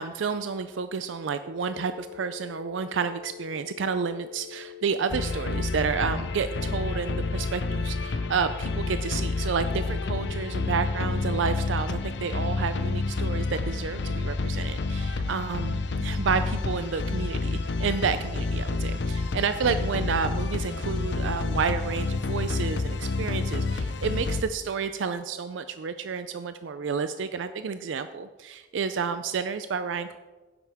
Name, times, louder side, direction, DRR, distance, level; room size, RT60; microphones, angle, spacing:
voice 1, 0.0-30.2, right 5 dB, 85° right, 11 dB, 0.4 m, -30 dB
sound 1, 1.4-11.4, left 11 dB, 60° right, 2.5 m, -44 dB
sound 2, 5.1-24.4, left 3 dB, 70° left, 0.5 m, -29 dB
12.0 x 9.7 x 3.5 m, 1.2 s
head